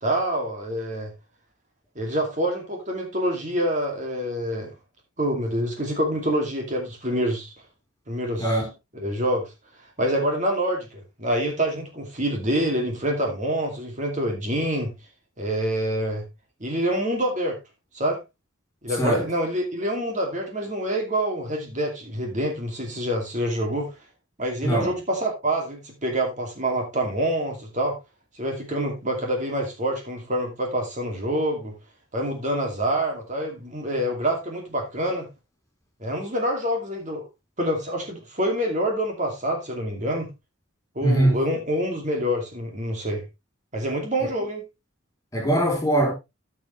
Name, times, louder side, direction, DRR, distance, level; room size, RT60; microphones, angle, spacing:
voice 1, 0.0-1.1 2.0-4.7 5.2-7.5 8.1-8.6 9.0-9.5 10.0-14.9 15.4-16.2 16.6-17.6 17.9-18.2 18.8-23.9 24.4-28.0 28.4-31.7 32.1-35.3 36.0-37.2 37.6-40.3 41.0-43.2 43.7-44.6, right 1 dB, 35° right, 2.5 m, -26 dB
voice 2, 8.4-8.7 18.9-19.3 24.6-25.0 41.0-41.4 44.2-44.3 45.3-46.1, right 1 dB, 15° left, 3.9 m, -22 dB
14.0 x 6.7 x 3.2 m
head